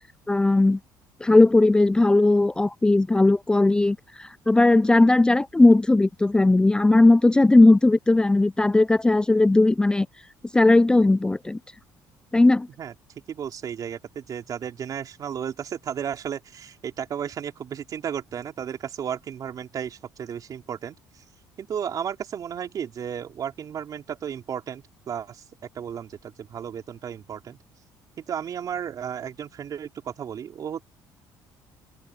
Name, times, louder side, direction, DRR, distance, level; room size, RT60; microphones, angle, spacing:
voice 1, 0.3-0.8 1.2-10.1 10.5-11.6 12.3-12.7, left 2 dB, 10° left, 0.4 m, -18 dB
voice 2, 13.3-21.0 21.6-25.4 25.8-27.6 28.2-30.8, right 8 dB, 50° right, 3.7 m, -33 dB
open air
cardioid pair, 95°, 8 cm